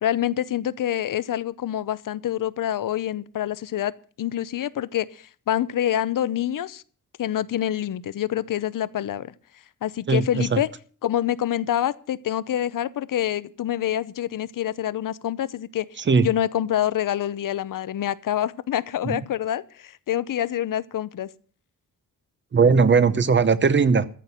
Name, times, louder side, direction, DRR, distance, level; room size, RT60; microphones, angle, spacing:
voice 1, 0.0-3.9 4.2-6.8 7.2-9.3 9.8-10.7 11.0-15.9 16.2-21.3, left 11 dB, 70° left, 0.8 m, -26 dB
voice 2, 10.1-10.6 16.1-16.3 19.0-19.2 22.5-24.1, right 5 dB, 35° right, 0.8 m, -19 dB
14.0 x 6.0 x 9.4 m
wide cardioid pair, 155°, 33 cm